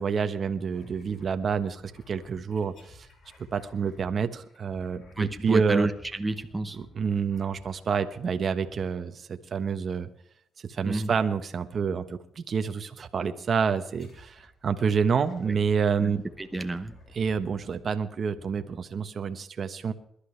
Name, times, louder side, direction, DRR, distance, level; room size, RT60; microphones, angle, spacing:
voice 1, 0.0-1.8 2.1-3.1 3.5-5.9 6.8-10.1 10.6-16.2 17.1-19.9, right 6 dB, 50° right, 8 dB, 1.1 m, -28 dB
sound 1, 0.7-8.2 8.6-9.3 11.0-11.5 12.4-12.6 13.8-14.6 15.0-19.4, left 1 dB, 60° left, 4.0 m, -55 dB
voice 2, 5.2-6.8 10.8-11.1 15.5-15.6 16.0-16.1 16.4-17.0, right 2 dB, 15° right, 6 dB, 1.0 m, -30 dB
22.0 x 12.0 x 3.3 m, 0.70 s
cardioid pair, 90°, 0 cm